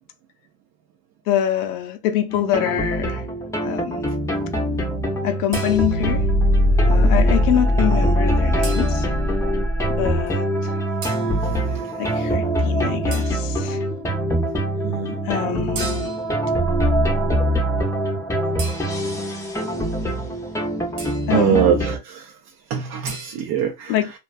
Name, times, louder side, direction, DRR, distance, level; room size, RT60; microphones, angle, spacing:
voice 1, 1.3-3.3 3.6-4.0 5.2-6.3 6.9-9.1 10.0-10.8 12.0-13.8 15.2-16.1 21.3-21.7 23.9-24.1, left 11 dB, 80° left, 0.5 m, -25 dB
sound 1, 2.3-22.0, equal, 5° left, 0.5 m, -22 dB
sound 2, 5.5-6.2 8.6-9.3 11.0-11.4 13.1-13.7 15.8-16.4 18.6-19.3 21.0-21.5 23.1-23.4, right 4 dB, 85° right, 1.0 m, -36 dB
voice 2, 14.8-15.2 21.3-22.3 22.7-23.9, right 9 dB, 50° right, 0.5 m, -22 dB
2.5 x 2.2 x 2.3 m
supercardioid pair, 110°, 45 cm